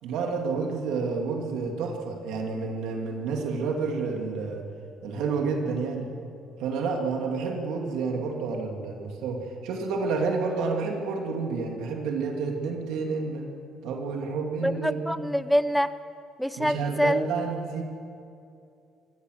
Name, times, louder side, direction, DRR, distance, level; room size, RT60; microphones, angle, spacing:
voice 1, 0.0-4.6 5.0-6.1 6.6-13.5 13.8-15.3 16.6-17.8, right 4 dB, 85° right, 1 dB, 2.6 m, -29 dB
voice 2, 14.6-15.9 16.4-17.2, equal, ahead, 13 dB, 0.8 m, -25 dB
25.0 x 17.0 x 6.6 m, 2.6 s
cardioid pair, 115°, 0 cm